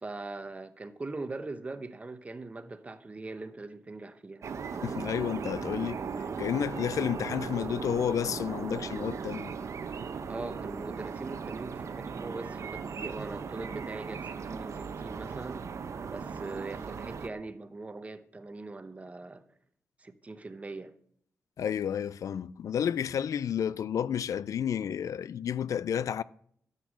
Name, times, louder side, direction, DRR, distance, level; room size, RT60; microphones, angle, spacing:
voice 1, 0.0-4.5 10.2-15.8 16.1-19.4 20.0-20.9, right 3 dB, 25° right, 0.9 m, -41 dB
sound 1, 4.4-17.3, right 5 dB, 55° right, 0.8 m, -37 dB
voice 2, 4.8-6.0 6.4-9.5 21.6-26.2, left 8 dB, 70° left, 0.4 m, -31 dB
13.0 x 8.2 x 6.2 m
wide cardioid pair, 145°, 6 cm